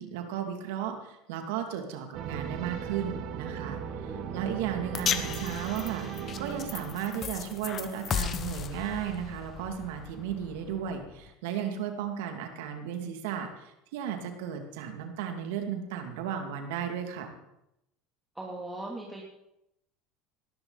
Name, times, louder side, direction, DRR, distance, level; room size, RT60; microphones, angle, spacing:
voice 1, 0.0-3.8 4.3-6.1 6.4-13.5 13.9-17.3, right 8 dB, 75° right, 5 dB, 2.4 m, -34 dB
sound 1, 2.1-7.7, right 8 dB, 55° right, 1.7 m, -38 dB
voice 2, 4.0-4.6 18.3-19.2, right 2 dB, 10° right, -3 dB, 2.9 m, -40 dB
sound 2, 4.9-11.3, left 8 dB, 40° left, 1.2 m, -36 dB
18.5 x 13.0 x 4.1 m, 0.85 s
hypercardioid pair, 85°, 0 cm